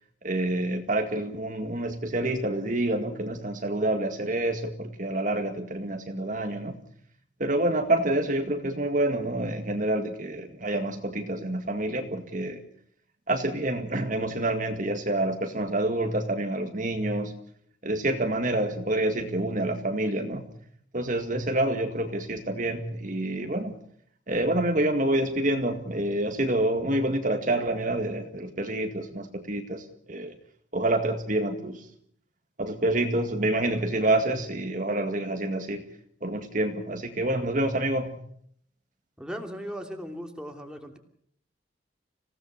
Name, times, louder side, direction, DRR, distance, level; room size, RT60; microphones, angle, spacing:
voice 1, 0.2-6.8 7.4-12.6 13.3-17.3 17.8-20.5 20.9-23.7 24.3-30.4 30.7-31.9 32.6-35.8 36.2-38.2, right 1 dB, 45° right, 5 dB, 2.0 m, -27 dB
voice 2, 39.2-41.0, equal, 5° right, 3 dB, 2.8 m, -37 dB
26.5 x 17.0 x 6.7 m, 0.65 s
head